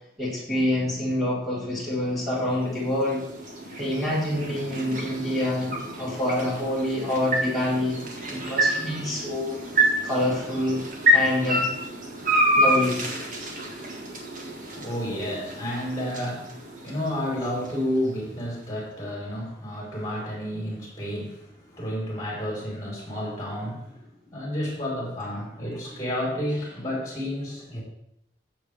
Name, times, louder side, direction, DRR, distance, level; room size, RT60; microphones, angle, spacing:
voice 1, 0.2-3.2 3.8-8.0 8.3-9.6 10.0-10.8 11.1-11.7 12.5-13.0, left 1 dB, ahead, -9 dB, 4.2 m, -26 dB
sound 1, 2.2-18.4, equal, 45° right, 1.9 m, -28 dB
voice 2, 14.4-27.8, equal, 20° left, -4 dB, 4.5 m, -31 dB
15.5 x 7.2 x 3.5 m, 0.76 s
head